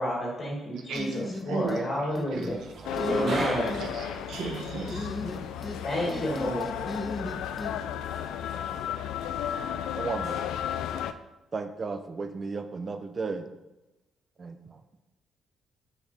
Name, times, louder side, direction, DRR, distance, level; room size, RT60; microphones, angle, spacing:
voice 1, 0.0-2.6 3.1-3.7 5.8-6.7, equal, 35° left, -2 dB, 1.8 m, -30 dB
sound 1, 1.0-1.9 2.2-2.6 3.0-3.8 4.9-5.8 6.1-7.7, left 2 dB, 5° left, 0.8 m, -36 dB
sound 2, 2.3-10.7, right 2 dB, 55° right, 1.1 m, -39 dB
sound 3, 2.8-11.1, left 10 dB, 85° left, 0.3 m, -34 dB
voice 2, 3.7-5.7, right 5 dB, 80° right, 2 dB, 1.0 m, -36 dB
voice 3, 9.9-10.3 11.5-13.5 14.4-14.6, right 4 dB, 40° right, 9 dB, 0.6 m, -34 dB
6.5 x 5.0 x 4.1 m, 1.0 s
cardioid pair, 90°, 0 cm